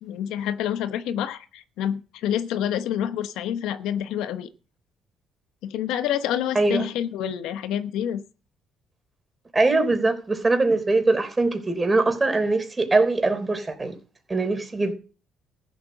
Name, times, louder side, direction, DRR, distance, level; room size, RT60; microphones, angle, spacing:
voice 1, 0.0-4.5 5.6-8.2, left 10 dB, 80° left, 1.0 m, -28 dB
voice 2, 9.5-14.0 14.3-14.9, right 3 dB, 25° right, 3.8 m, -22 dB
14.5 x 8.1 x 6.5 m
supercardioid pair, 70°, 0 cm